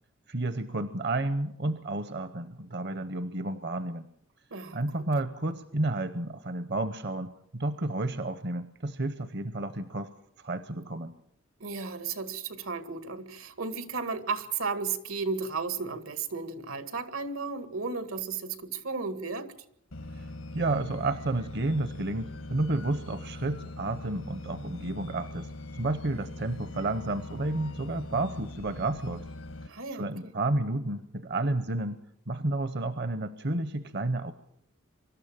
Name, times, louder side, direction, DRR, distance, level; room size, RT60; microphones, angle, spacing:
voice 1, 0.3-4.1 4.7-10.1 10.4-11.1 20.1-20.3 20.5-29.2 29.7-32.0 32.3-34.3, right 2 dB, 55° right, 12 dB, 0.8 m, -31 dB
voice 2, 11.6-19.5 29.7-30.3, right 4 dB, 85° right, 10 dB, 2.0 m, -34 dB
sound 1, 19.9-29.7, left 2 dB, 90° left, 1.4 m, -42 dB
24.5 x 12.5 x 8.8 m, 0.73 s
head